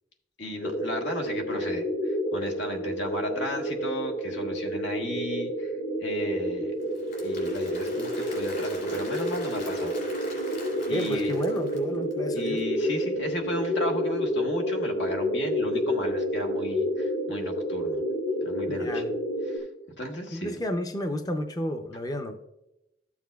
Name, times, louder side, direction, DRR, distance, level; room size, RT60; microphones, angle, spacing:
voice 1, 0.4-5.7 6.0-6.7 7.2-9.9 10.9-11.4 12.3-18.0 18.4-19.0 19.5-19.7 20.0-20.6, left 1 dB, 85° left, 2 dB, 1.4 m, -34 dB
sound 1, 0.6-19.6, equal, 70° left, 1.7 m, -29 dB
Applause / Crowd, 6.8-12.1, left 2 dB, 50° left, 3.2 m, -44 dB
voice 2, 10.9-12.6 18.7-19.1 20.3-22.5, equal, 20° left, 6 dB, 0.5 m, -31 dB
13.0 x 7.1 x 2.3 m, 0.90 s
head